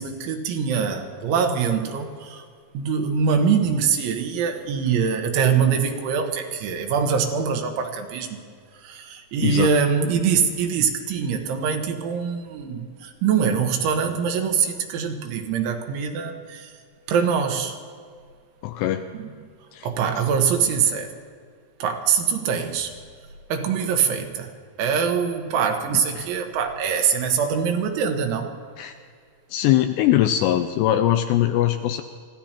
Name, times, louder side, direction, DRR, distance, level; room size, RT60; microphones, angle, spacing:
voice 1, 0.0-2.5 2.8-8.4 8.8-16.7 17.1-17.8 19.1-19.3 19.8-21.2 21.8-22.9 23.5-24.5 24.8-28.5, right 6 dB, 80° right, 4 dB, 3.5 m, -23 dB
voice 2, 18.6-19.0 19.7-19.9 26.2-26.3 28.8-28.9 29.5-32.0, left 12 dB, 85° left, 8 dB, 2.5 m, -21 dB
25.0 x 16.0 x 2.9 m, 2.1 s
omnidirectional pair, 5.4 m